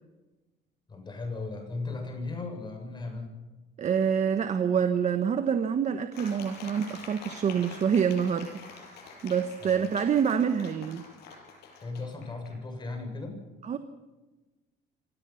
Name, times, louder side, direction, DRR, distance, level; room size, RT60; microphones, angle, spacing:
voice 1, 0.9-3.3 9.6-9.8 11.8-13.4, left 3 dB, 25° left, 4 dB, 7.2 m, -36 dB
voice 2, 3.8-11.0 13.6-13.8, right 7 dB, 45° right, 8 dB, 1.3 m, -27 dB
sound 1, 6.1-12.5, left 4 dB, 75° left, 6.8 m, -47 dB
25.5 x 18.5 x 5.8 m, 1.2 s
cardioid pair, 110°, 17 cm